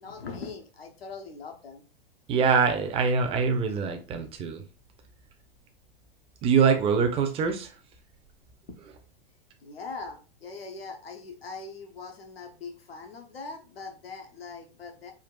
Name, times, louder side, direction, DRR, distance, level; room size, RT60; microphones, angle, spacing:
voice 1, 0.0-1.8 9.6-15.1, left 4 dB, 80° left, 4 dB, 0.8 m, -41 dB
voice 2, 2.3-4.6 6.4-7.7, right 6 dB, 20° right, 6 dB, 0.5 m, -24 dB
3.7 x 2.3 x 2.3 m, 0.34 s
figure-of-eight pair, 100°, 29 cm